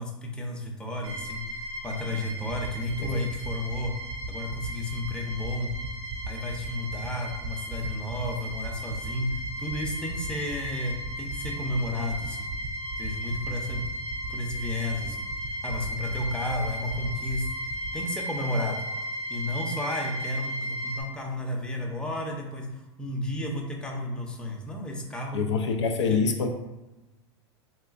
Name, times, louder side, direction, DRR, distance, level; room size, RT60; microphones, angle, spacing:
voice 1, 0.0-1.4 1.8-3.9 4.3-5.7 6.3-12.5 13.0-13.9 14.3-15.2 15.6-17.5 17.9-18.8 19.3-22.7 23.0-25.4, left 1 dB, 5° left, 0 dB, 0.6 m, -32 dB
sound 1, 1.0-21.0, equal, 90° right, 0.6 m, -36 dB
sound 2, 2.6-17.9, right 6 dB, 40° right, 0.5 m, -37 dB
voice 2, 25.3-26.5, left 5 dB, 85° left, 4 dB, 0.4 m, -25 dB
3.7 x 2.4 x 2.4 m, 1.1 s
hypercardioid pair, 100°, 14 cm